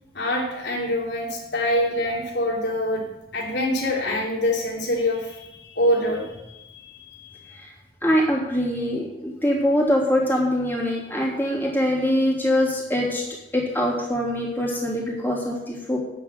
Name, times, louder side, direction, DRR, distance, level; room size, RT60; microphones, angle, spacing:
voice 1, 0.1-3.0 3.3-7.6 10.9-11.0, left 1 dB, 85° left, -2 dB, 3.2 m, -25 dB
voice 2, 8.0-13.2 13.5-16.0, equal, 10° left, -4 dB, 3.3 m, -23 dB
9.1 x 7.7 x 9.0 m, 0.96 s
head